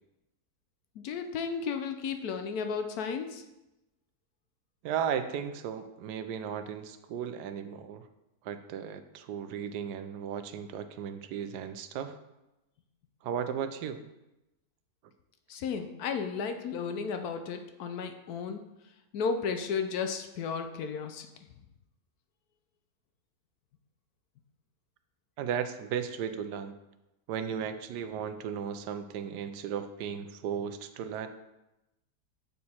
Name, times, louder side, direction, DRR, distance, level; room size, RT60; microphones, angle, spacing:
voice 1, 1.0-3.4 15.5-18.6 19.1-21.3, left 5 dB, 70° left, 7 dB, 1.1 m, -33 dB
voice 2, 4.8-8.0 8.4-12.2 13.2-14.0 25.4-26.7 27.3-31.3, right 8 dB, 80° right, 10 dB, 1.1 m, -35 dB
8.4 x 4.4 x 4.2 m, 0.95 s
omnidirectional pair, 1.8 m